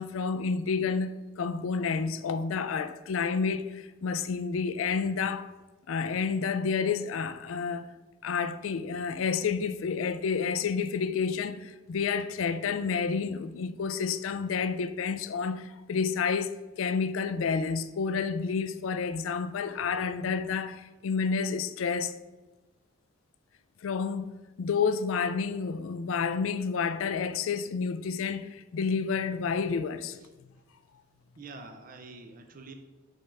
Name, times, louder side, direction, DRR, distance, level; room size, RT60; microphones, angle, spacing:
voice 1, 0.0-5.5 5.9-7.9 8.2-22.1 23.8-24.3 24.6-30.2, left 5 dB, 85° left, 0.4 m, -30 dB
voice 2, 31.4-32.7, right 3 dB, 45° right, 0.6 m, -46 dB
6.9 x 5.5 x 3.4 m
head